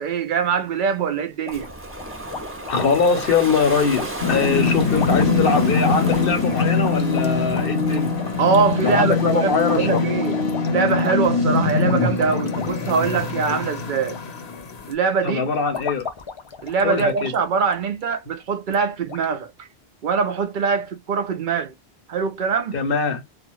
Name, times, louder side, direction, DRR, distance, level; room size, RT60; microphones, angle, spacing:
voice 1, 0.0-1.7 8.4-10.4 10.7-14.2 14.9-15.5 16.6-19.5 20.0-21.7 22.1-22.8, right 5 dB, 60° right, 0.6 m, -23 dB
sound 1, 1.5-14.2 14.5-14.9 15.4-17.3 17.6-17.7 18.1-18.2 18.7-18.8 19.1-19.3, left 5 dB, 40° left, 0.4 m, -36 dB
Ocean, 1.5-10.3, right 2 dB, 20° right, 0.4 m, -35 dB
voice 2, 2.7-8.1 8.8-10.0 15.2-16.1 16.8-17.3 22.7-23.2, left 5 dB, 65° left, 0.9 m, -22 dB
sound 2, 4.2-14.9, left 4 dB, 85° left, 1.2 m, -23 dB
2.3 x 2.3 x 3.0 m
omnidirectional pair, 1.1 m